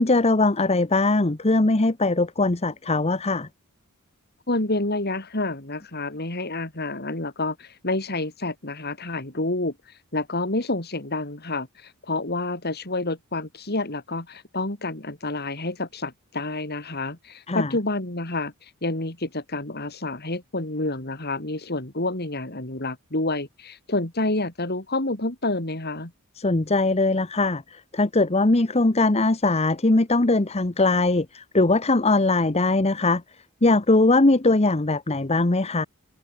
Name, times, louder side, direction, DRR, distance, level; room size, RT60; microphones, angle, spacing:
voice 1, 0.0-3.5 17.5-17.7 26.4-33.2 33.6-35.9, left 2 dB, 30° left, 1.0 m, -21 dB
voice 2, 4.5-9.7 10.1-18.5 18.8-26.1, left 2 dB, 50° left, 3.8 m, -28 dB
head